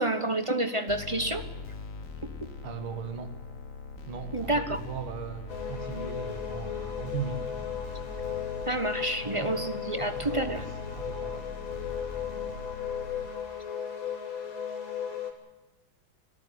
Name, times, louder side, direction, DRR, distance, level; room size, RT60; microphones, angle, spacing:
voice 1, 0.0-1.4 2.4-2.5 4.3-4.8 8.7-10.6, right 1 dB, 25° right, 10 dB, 0.7 m, -29 dB
sound 1, 0.9-13.3, left 4 dB, 40° left, 1.9 m, -41 dB
voice 2, 2.6-3.4 4.1-7.7 9.2-9.7 10.0-10.7 11.0-11.5, right 6 dB, 75° right, 9 dB, 2.6 m, -38 dB
sound 2, 5.5-15.3, left 8 dB, 65° left, 3.7 m, -36 dB
25.5 x 13.5 x 9.7 m, 1.2 s
omnidirectional pair, 2.3 m